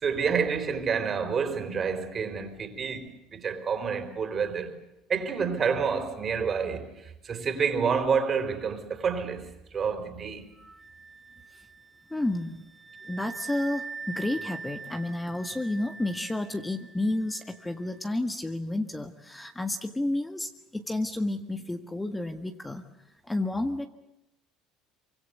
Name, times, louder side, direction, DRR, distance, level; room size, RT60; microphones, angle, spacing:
voice 1, 0.0-4.7 5.1-9.5 9.7-10.5, right 6 dB, 35° right, 4.2 m, -28 dB
Wind instrument woodwind instrument, 10.6-18.0, right 4 dB, 15° right, 1.9 m, -43 dB
voice 2, 12.1-12.6 13.0-22.9 23.2-23.9, left 1 dB, 10° left, 1.7 m, -31 dB
24.5 x 24.0 x 8.3 m
supercardioid pair, 95°, 0 cm